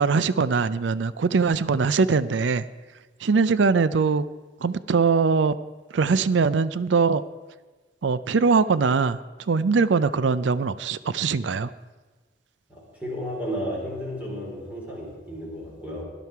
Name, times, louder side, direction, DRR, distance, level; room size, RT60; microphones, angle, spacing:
voice 1, 0.0-2.6 3.2-4.2 4.6-5.6 5.9-7.2 8.0-9.2 9.5-11.7, right 4 dB, 85° right, 16 dB, 0.5 m, -21 dB
voice 2, 12.7-16.1, equal, 10° right, -3 dB, 3.8 m, -33 dB
17.5 x 11.0 x 4.6 m, 1.2 s
head